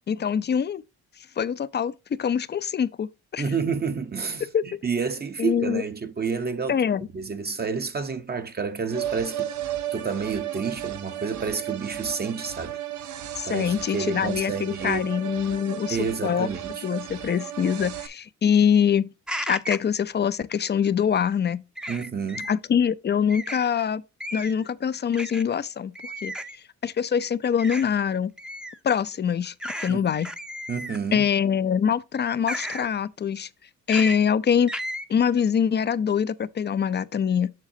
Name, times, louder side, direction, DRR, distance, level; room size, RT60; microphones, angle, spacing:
voice 1, 0.1-0.8 1.4-1.9 2.2-3.4 4.5-4.6 5.4-5.8 6.7-7.1 13.4-16.0 16.2-16.5 16.8-19.1 19.5-21.6 22.5-24.0 24.3-25.9 26.2-26.3 26.8-28.3 28.8-29.5 29.8-30.3 31.1-33.5 33.9-34.7 35.1-37.5, left 7 dB, 35° left, 0.5 m, -24 dB
voice 2, 3.4-6.8 7.1-9.5 9.9-12.8 13.4-15.0 15.9-16.8 21.9-22.5 29.9-30.1 30.7-31.3, right 5 dB, 30° right, 0.8 m, -29 dB
sound 1, 8.9-18.1, right 11 dB, 70° right, 0.9 m, -34 dB
sound 2, 19.3-19.9 21.8-22.5 23.3-23.6 24.2-24.6 25.1-25.4 26.0-26.6 27.6-27.8 28.4-28.8 29.6-29.9 30.2-31.1 32.5-32.9 33.9-34.2 34.7-35.0, equal, 5° right, 0.7 m, -33 dB
7.4 x 6.5 x 2.7 m
cardioid pair, 90°, 30 cm